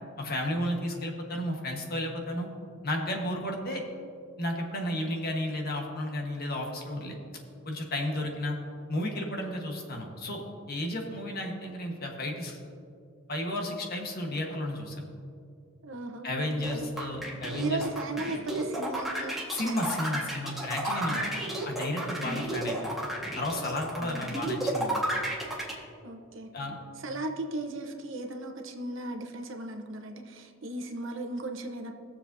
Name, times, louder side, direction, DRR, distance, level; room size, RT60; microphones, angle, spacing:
voice 1, 0.2-2.5 2.8-3.8 4.4-7.1 7.6-8.6 8.9-10.4 10.7-12.6 13.3-15.0 16.2-17.8 19.5-21.2 21.6-22.9 23.4-25.1 26.5-26.8, left 1 dB, 50° left, 1 dB, 1.3 m, -33 dB
voice 2, 15.8-16.8 17.5-19.3 19.6-20.0 21.1-21.4 24.0-24.4 26.0-26.5 27.0-31.9, right 2 dB, 65° right, 4 dB, 1.0 m, -36 dB
sound 1, 16.6-25.7, right 1 dB, ahead, 1.6 m, -32 dB
21.0 x 7.0 x 2.7 m, 2.4 s
head